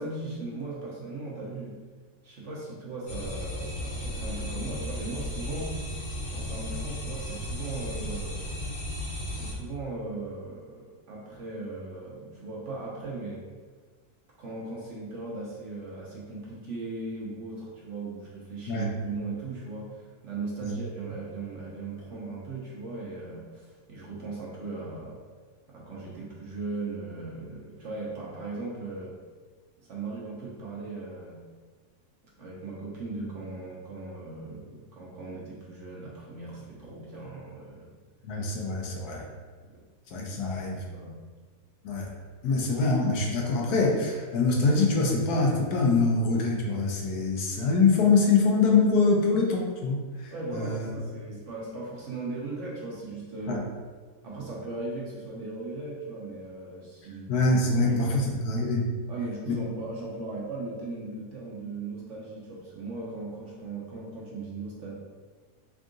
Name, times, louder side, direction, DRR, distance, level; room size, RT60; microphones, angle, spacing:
voice 1, 0.0-1.8 2.2-5.7 6.3-8.5 9.3-13.4 14.4-25.2 25.7-29.2 29.8-31.4 32.4-37.9 40.7-41.2 50.3-53.6 54.2-57.4 57.7-58.2 59.1-64.9, right 3 dB, 55° right, -5 dB, 1.0 m, -38 dB
sound 1, 3.1-9.5, left 1 dB, 50° left, 1.3 m, -35 dB
voice 2, 38.2-39.3 40.1-40.8 41.8-42.1 42.4-50.9 53.5-53.6 57.3-58.9 59.5-59.6, left 3 dB, 75° left, 0 dB, 1.2 m, -24 dB
3.6 x 2.4 x 3.7 m, 1.4 s
omnidirectional pair, 1.7 m